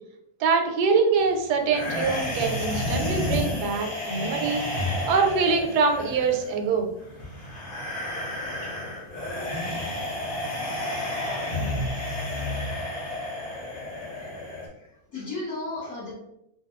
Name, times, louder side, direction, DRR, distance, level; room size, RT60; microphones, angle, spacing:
voice 1, 0.4-4.6 5.1-6.9, right 5 dB, 80° right, 3 dB, 1.2 m, -24 dB
sound 1, 1.7-14.7, left 1 dB, 40° left, 1.0 m, -31 dB
voice 2, 14.7-16.1, left 2 dB, 65° left, -10 dB, 1.8 m, -35 dB
4.1 x 2.3 x 2.9 m, 0.79 s
omnidirectional pair, 1.7 m